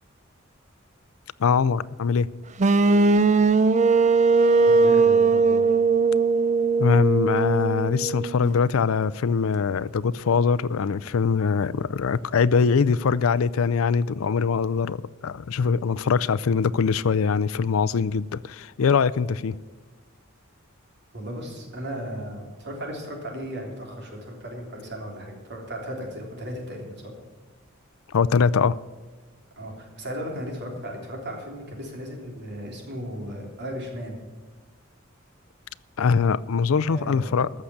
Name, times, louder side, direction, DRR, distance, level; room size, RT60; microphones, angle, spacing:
voice 1, 1.4-2.3 6.8-19.6 28.1-28.8 36.0-37.5, left 5 dB, 80° left, 0.4 m, -22 dB
sound 1, 2.6-8.5, right 4 dB, 35° right, 0.5 m, -19 dB
voice 2, 4.6-5.8 21.1-27.1 29.6-34.2 36.9-37.4, equal, 55° right, 3.4 m, -36 dB
14.5 x 6.6 x 8.5 m
head